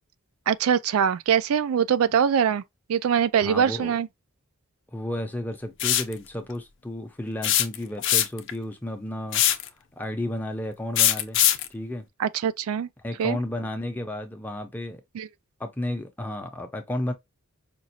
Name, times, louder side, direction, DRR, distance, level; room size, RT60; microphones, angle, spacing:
voice 1, 0.5-2.6 2.9-4.1 12.2-12.9 13.2-13.4 15.1-15.3, right 8 dB, 90° right, 0.4 m, -23 dB
voice 2, 3.4-3.9 4.9-9.6 10.0-11.4 11.7-12.1 13.0-15.0 15.6-17.1, left 1 dB, 10° left, 0.6 m, -32 dB
sound 1, 5.8-6.1 7.4-8.5 9.3-9.7 11.0-11.7, left 12 dB, 60° left, 0.5 m, -21 dB
5.2 x 2.4 x 2.8 m
head